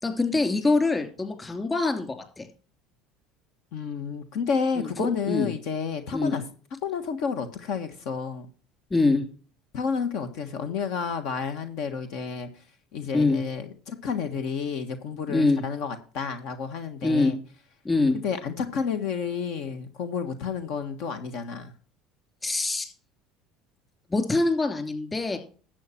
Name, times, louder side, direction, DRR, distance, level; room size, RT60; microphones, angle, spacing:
voice 1, 0.0-2.5 4.8-5.5 6.1-6.4 8.9-9.3 13.1-13.4 15.3-15.6 17.0-17.3 17.8-18.2 22.4-22.9 24.1-25.4, left 3 dB, 20° left, 7 dB, 2.9 m, -24 dB
voice 2, 3.7-6.4 6.8-8.5 9.7-12.6 12.9-17.4 18.1-21.7, left 6 dB, 70° left, 8 dB, 1.4 m, -30 dB
11.5 x 7.7 x 4.3 m, 0.38 s
supercardioid pair, 90°, 0 cm